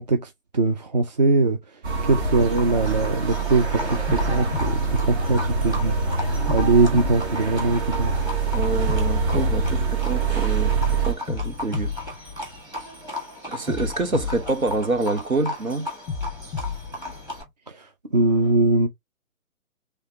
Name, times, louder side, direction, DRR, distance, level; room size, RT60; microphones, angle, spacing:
voice 1, 0.0-1.6 2.0-6.0 6.5-8.1 17.7-18.9, right 3 dB, 35° right, 0.4 m, -21 dB
sound 1, 1.8-11.1, right 5 dB, 50° right, 1.3 m, -25 dB
Livestock farm animals working animals, 1.9-17.4, equal, 10° right, 1.3 m, -36 dB
sound 2, 2.1-3.5 4.1-5.8 6.5-8.3 8.9-10.7 11.3-13.1 13.7-15.4 16.1-17.5, left 6 dB, 10° left, 0.8 m, -33 dB
voice 2, 8.5-11.9 13.5-15.9, right 3 dB, 90° right, 1.1 m, -27 dB
3.3 x 3.2 x 2.8 m
figure-of-eight pair, 130°, 41 cm